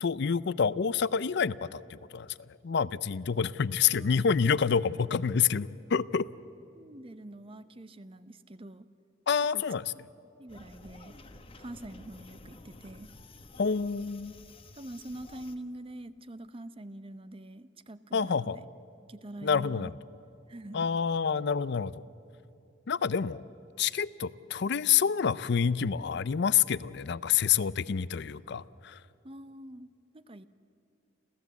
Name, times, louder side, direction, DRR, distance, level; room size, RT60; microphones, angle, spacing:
voice 1, 0.0-2.3 2.6-6.3 9.3-9.8 13.6-14.3 18.1-18.6 19.4-19.9 20.7-22.0 22.9-23.4 23.8-29.0, left 6 dB, 60° left, 18 dB, 0.5 m, -28 dB
voice 2, 6.7-8.9 9.5-9.6 9.9-10.0 10.4-11.2 11.6-13.1 14.7-18.6 19.1-19.9 20.5-20.9 29.2-30.5, right 1 dB, 30° right, 13 dB, 0.7 m, -45 dB
sound 1, 10.5-15.6, left 2 dB, 30° left, 1.1 m, -52 dB
28.0 x 15.5 x 8.3 m, 2.7 s
head